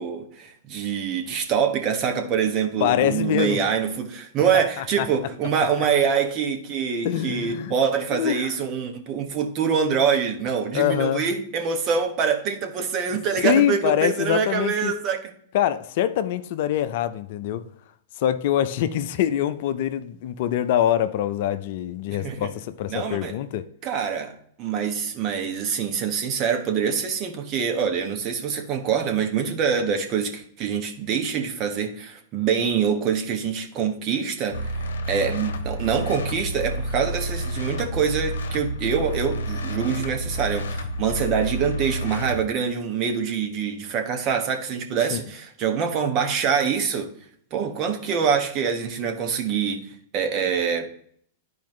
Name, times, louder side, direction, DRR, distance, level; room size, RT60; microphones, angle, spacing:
voice 1, 0.0-15.2 22.2-22.5 22.9-23.3 23.8-47.1 47.5-50.9, right 7 dB, 40° right, 1.4 m, -25 dB
voice 2, 2.8-3.7 4.8-5.1 7.0-7.7 8.1-8.5 10.7-11.3 13.4-14.9 15.5-17.6 18.2-23.7 45.1-45.2, left 10 dB, 60° left, 0.6 m, -24 dB
sound 1, 34.5-42.4, equal, 75° left, 0.9 m, -30 dB
11.5 x 4.7 x 3.2 m
hypercardioid pair, 105°, 0 cm